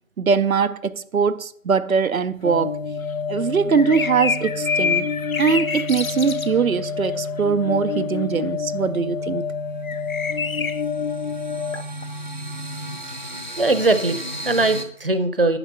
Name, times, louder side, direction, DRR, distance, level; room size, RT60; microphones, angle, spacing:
voice 1, 0.2-2.8 3.3-5.1 5.4-9.4, right 6 dB, 90° right, 0.6 m, -21 dB
sound 1, 2.4-13.0, left 5 dB, 60° left, 1.0 m, -29 dB
sound 2, 3.7-6.9 9.8-10.8, left 5 dB, 85° left, 0.7 m, -27 dB
sound 3, 9.4-9.5 9.9-14.8, equal, 35° left, 0.7 m, -35 dB
voice 2, 13.6-15.6, right 2 dB, 45° right, 0.8 m, -20 dB
10.0 x 6.3 x 5.4 m
figure-of-eight pair, 170°, 40 cm